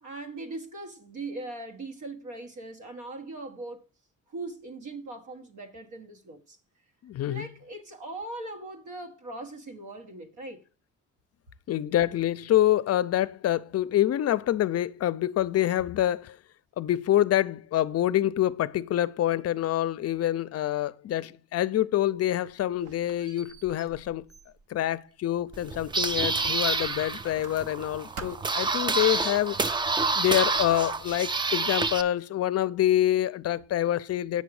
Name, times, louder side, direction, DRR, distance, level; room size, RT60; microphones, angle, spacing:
voice 1, 0.0-3.8 4.3-6.6 7.3-10.6, right 2 dB, 85° right, 1.4 m, -40 dB
voice 2, 7.0-7.5 11.7-16.4 16.8-24.3 24.7-29.6 30.1-34.4, left 12 dB, 55° left, 0.5 m, -26 dB
Squeak, 22.1-25.9 26.3-27.9 28.2-28.7, right 4 dB, 50° right, 0.7 m, -48 dB
sound 1, 25.5-32.0, right 3 dB, 15° right, 0.3 m, -28 dB
8.3 x 6.2 x 4.8 m
cardioid pair, 150°, 30 cm